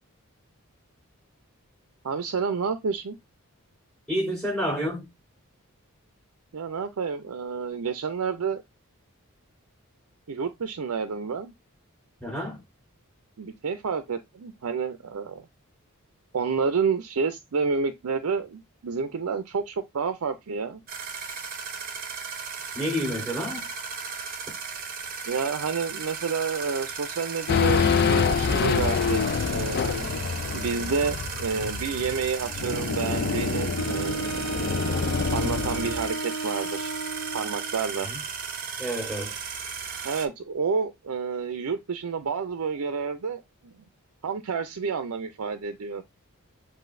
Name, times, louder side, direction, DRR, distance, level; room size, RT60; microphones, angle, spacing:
voice 1, 2.0-3.2 6.5-8.6 10.3-11.5 13.4-15.4 16.3-20.8 25.2-29.2 29.5-30.1 30.5-34.4 35.3-36.9 37.3-38.1 40.0-43.7 44.2-46.0, right 5 dB, 75° right, 0.5 m, -29 dB
voice 2, 4.1-5.1 12.2-12.6 22.7-23.6 38.0-38.2 38.8-39.3, equal, 5° left, 3.6 m, -29 dB
sound 1, 20.9-40.3, right 6 dB, 40° right, 0.8 m, -36 dB
Race car auto racing / Idling / Accelerating revving vroom, 27.5-36.1, left 6 dB, 45° left, 0.4 m, -26 dB
Wind instrument woodwind instrument, 33.7-37.8, right 3 dB, 75° left, 0.8 m, -34 dB
7.6 x 2.6 x 2.6 m
head